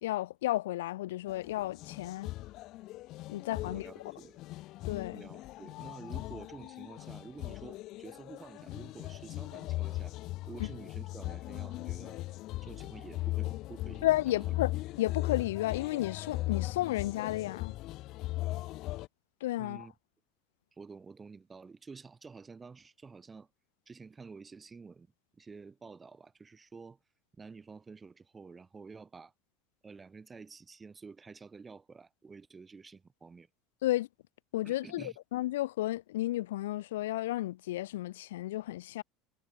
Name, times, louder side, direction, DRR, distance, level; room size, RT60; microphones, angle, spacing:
voice 1, 0.0-2.3 3.3-3.8 4.8-5.2 14.0-17.7 19.4-19.9 33.8-34.1 34.5-39.0, left 15 dB, 90° left, 0.4 m, -32 dB
sound 1, 1.3-19.1, left 17 dB, 60° left, 0.7 m, -38 dB
voice 2, 3.6-4.4 5.1-10.1 10.5-12.2 12.6-14.5 19.6-19.9 20.7-23.5 23.9-25.1 25.3-27.0 27.4-29.3 29.8-33.5 34.6-35.2, right 4 dB, 20° right, 2.8 m, -50 dB
supercardioid pair, 105°, 0 cm